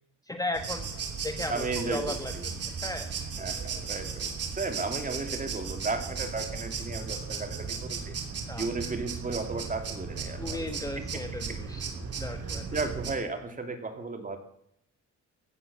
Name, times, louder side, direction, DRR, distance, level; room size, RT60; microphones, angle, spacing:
voice 1, 0.3-0.9 1.2-2.5 2.8-3.1 8.5-8.7 10.4-11.9 12.1-12.7, left 2 dB, 10° left, 6 dB, 1.4 m, -35 dB
sound 1, 0.5-13.1, right 5 dB, 50° right, 3.0 m, -36 dB
voice 2, 1.5-2.4 3.3-8.2 8.6-10.7 11.0-11.2 11.5-11.6 12.7-14.4, right 3 dB, 25° right, 5 dB, 2.8 m, -34 dB
15.5 x 9.6 x 7.0 m, 0.72 s
cardioid pair, 90°, 30 cm